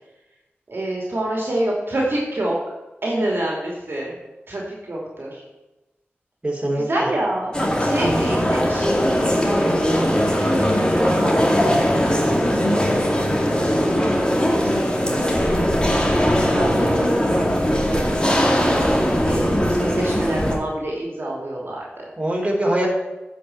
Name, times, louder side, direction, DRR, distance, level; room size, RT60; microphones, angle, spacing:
voice 1, 0.7-2.6 3.0-4.2 4.5-5.4 6.7-7.5 7.8-11.6 12.2-15.8 16.4-18.9 19.3-22.1, right 1 dB, 60° right, -2 dB, 2.4 m, -28 dB
voice 2, 6.4-7.1 19.2-19.4 22.2-22.9, right 1 dB, 25° right, -2 dB, 3.4 m, -23 dB
sound 1, 7.5-20.5, equal, 20° left, 2.3 m, -20 dB
10.0 x 5.4 x 7.6 m, 1.1 s
cardioid pair, 45°, 4 cm